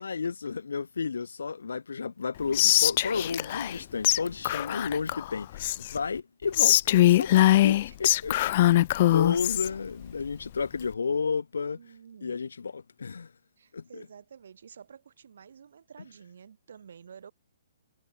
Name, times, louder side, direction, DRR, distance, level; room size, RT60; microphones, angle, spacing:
voice 1, 0.0-8.8 9.1-11.8 12.2-13.3 13.7-14.1, left 5 dB, 80° left, 5.9 m, -32 dB
Whispering, 2.5-3.8 4.0-4.2 4.4-6.0 6.5-9.7, left 15 dB, 45° left, 1.0 m, -22 dB
voice 2, 11.7-12.5 13.6-17.3, right 7 dB, 65° right, 5.9 m, -50 dB
hypercardioid pair, 135°, 0 cm